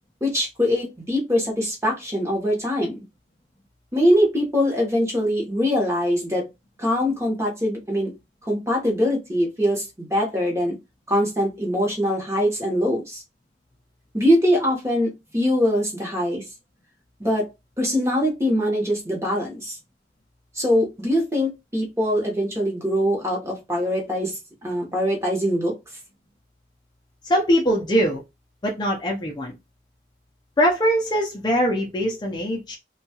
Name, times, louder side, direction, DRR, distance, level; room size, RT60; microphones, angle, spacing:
voice 1, 0.2-3.0 3.9-6.4 6.8-8.1 8.5-10.7 11.1-13.2 14.1-16.4 17.2-17.5 17.8-19.8 20.5-25.7, equal, 15° right, 0.9 m, -23 dB
voice 2, 27.2-28.2 28.6-29.6 30.6-32.8, equal, 25° left, 0.4 m, -22 dB
2.7 x 2.2 x 2.7 m
head